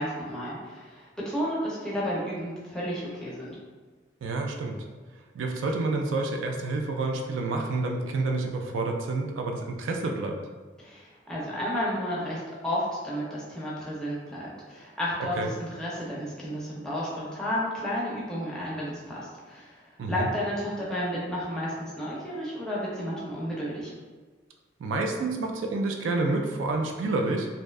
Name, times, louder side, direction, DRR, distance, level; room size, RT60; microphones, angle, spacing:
voice 1, 0.0-3.6 10.8-23.9, equal, 5° left, -7 dB, 0.4 m, -32 dB
voice 2, 4.2-4.8 5.3-10.4 15.4-15.5 20.0-20.3 24.8-27.5, right 3 dB, 90° right, 3 dB, 0.3 m, -28 dB
2.6 x 2.1 x 2.3 m, 1.4 s
head